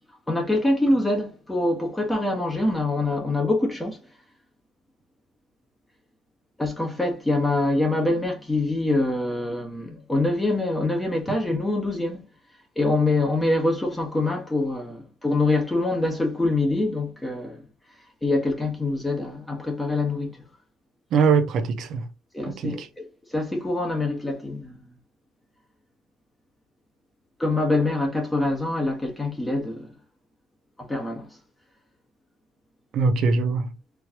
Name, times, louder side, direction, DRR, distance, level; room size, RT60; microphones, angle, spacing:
voice 1, 0.3-4.0 6.6-12.3 12.7-17.6 18.2-20.4 22.3-23.0 23.3-24.8 27.4-29.9 30.8-31.3, left 2 dB, 10° left, 1.5 m, -25 dB
voice 2, 21.1-22.1 22.5-22.9 32.9-33.7, right 5 dB, 60° right, 0.7 m, -22 dB
4.7 x 3.2 x 2.9 m
cardioid pair, 120°, 0 cm